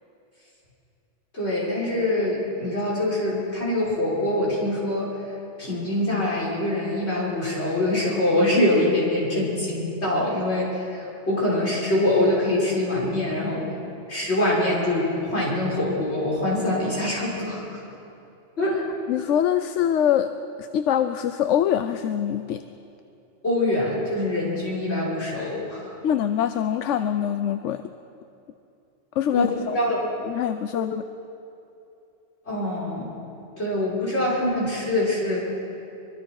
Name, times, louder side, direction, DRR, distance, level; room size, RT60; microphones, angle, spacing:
voice 1, 1.3-5.1 5.6-13.7 14.1-17.8 18.6-18.9 23.4-26.0 29.3-30.1 30.7-30.8 32.5-33.1 33.6-35.4, left 1 dB, 60° left, -6 dB, 6.1 m, -24 dB
voice 2, 19.1-20.3 20.6-22.6 26.0-27.8 29.2-29.8 30.3-31.0, left 10 dB, 80° left, 10 dB, 1.0 m, -24 dB
24.5 x 23.0 x 4.8 m, 2.7 s
omnidirectional pair, 1.2 m